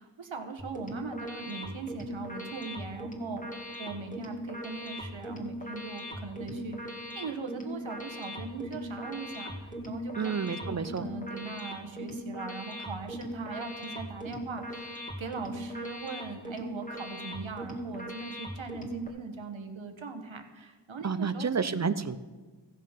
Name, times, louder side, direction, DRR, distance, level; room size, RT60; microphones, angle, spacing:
voice 1, 0.0-21.7, right 4 dB, 75° right, 5 dB, 1.4 m, -40 dB
sound 1, 0.6-19.1, equal, 15° left, 2.0 m, -40 dB
voice 2, 10.2-11.1 21.0-22.2, right 5 dB, 35° right, 14 dB, 0.6 m, -30 dB
15.0 x 6.4 x 5.8 m, 1.4 s
wide cardioid pair, 50°, 47 cm